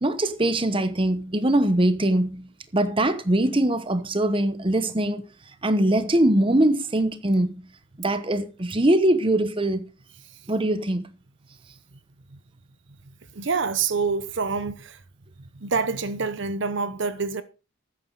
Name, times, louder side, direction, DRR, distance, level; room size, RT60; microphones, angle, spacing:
voice 1, 0.0-5.2 5.6-7.7 8.0-9.8 10.5-11.1, right 1 dB, 25° right, 1.0 m, -22 dB
voice 2, 13.3-15.0 15.5-17.4, right 4 dB, 60° right, 0.8 m, -27 dB
13.5 x 9.4 x 4.0 m
head